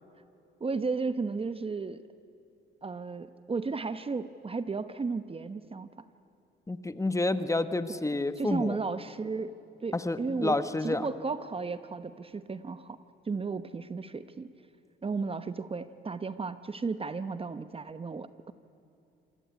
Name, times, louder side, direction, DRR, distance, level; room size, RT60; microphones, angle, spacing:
voice 1, 0.6-2.0 2.8-5.9 7.9-8.0 8.4-9.5 9.8-14.5 15.0-18.5, right 4 dB, 30° right, 12 dB, 0.9 m, -34 dB
voice 2, 6.7-8.8 9.9-11.1, left 2 dB, 15° left, 12 dB, 1.2 m, -29 dB
27.0 x 21.0 x 9.5 m, 2.7 s
cardioid pair, 90°, 20 cm